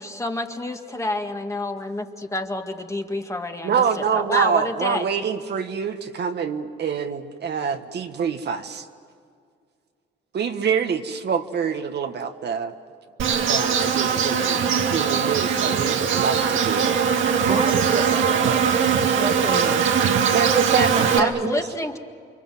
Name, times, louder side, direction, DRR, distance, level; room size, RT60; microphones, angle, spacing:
voice 1, 0.0-5.1 21.2-22.0, left 2 dB, 15° left, 4 dB, 2.0 m, -28 dB
voice 2, 3.6-8.8 10.3-12.7 13.5-14.7 14.9-17.1 20.3-21.3, right 6 dB, 55° right, 5 dB, 1.5 m, -25 dB
Insect, 13.2-21.2, right 7 dB, 75° right, 1.9 m, -21 dB
voice 3, 17.4-18.3 19.0-19.9 20.9-21.6, right 3 dB, 25° right, 7 dB, 1.8 m, -29 dB
29.0 x 24.0 x 7.8 m, 2.1 s
cardioid pair, 90°, 20 cm